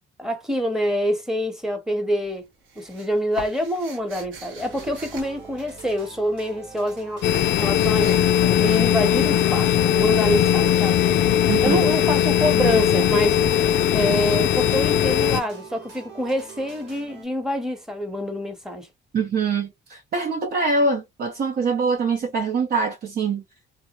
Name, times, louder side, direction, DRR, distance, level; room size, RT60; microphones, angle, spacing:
voice 1, 0.2-2.5 2.8-7.2 7.6-11.0 11.6-13.7 13.9-18.9, equal, ahead, 0.9 m, -26 dB
sound 1, 2.2-6.0 6.8-8.3 8.6-8.9 9.2-11.2 13.4-13.5, right 4 dB, 85° right, 1.0 m, -42 dB
sound 2, 4.6-17.2, right 5 dB, 65° right, 1.1 m, -43 dB
sound 3, 7.2-15.4, left 10 dB, 70° left, 0.4 m, -19 dB
voice 2, 11.5-11.8 19.1-23.4, right 4 dB, 50° right, 0.6 m, -24 dB
2.4 x 2.1 x 2.8 m
cardioid pair, 90°, 20 cm